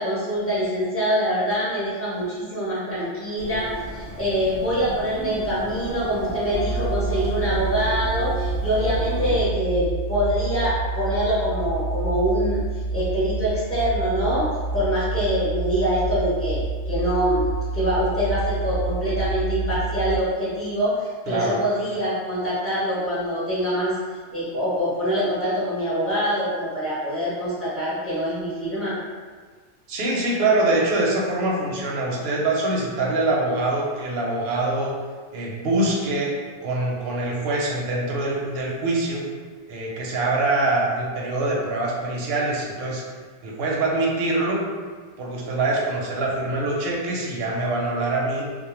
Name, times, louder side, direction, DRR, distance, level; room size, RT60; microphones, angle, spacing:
voice 1, 0.0-12.6 12.9-17.5 17.7-23.9 24.3-28.9, equal, 15° left, -9 dB, 0.6 m, -24 dB
sound 1, 3.4-9.4, right 1 dB, 20° right, 0.3 m, -34 dB
sound 2, 6.5-20.2, right 3 dB, 85° right, 1.0 m, -28 dB
voice 2, 21.3-21.6 29.9-34.9 35.3-36.4 36.6-39.2 39.7-43.0 43.4-44.6 45.2-48.6, right 2 dB, 65° right, -3 dB, 0.7 m, -24 dB
2.1 x 2.1 x 3.0 m, 1.5 s
omnidirectional pair, 1.2 m